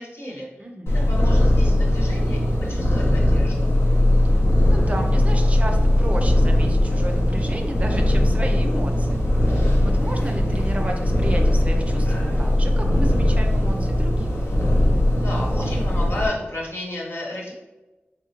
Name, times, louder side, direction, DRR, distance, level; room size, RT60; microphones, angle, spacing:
voice 1, 0.0-0.5 1.1-3.7 15.2-17.5, left 1 dB, 65° left, -3 dB, 1.2 m, -32 dB
voice 2, 0.6-0.9 4.2-4.4 4.7-14.4, right 1 dB, 30° right, 3 dB, 0.5 m, -33 dB
Purr, 0.9-16.3, left 1 dB, 85° left, 0.9 m, -19 dB
3.7 x 3.1 x 2.9 m, 1.1 s
wide cardioid pair, 55°, 4 cm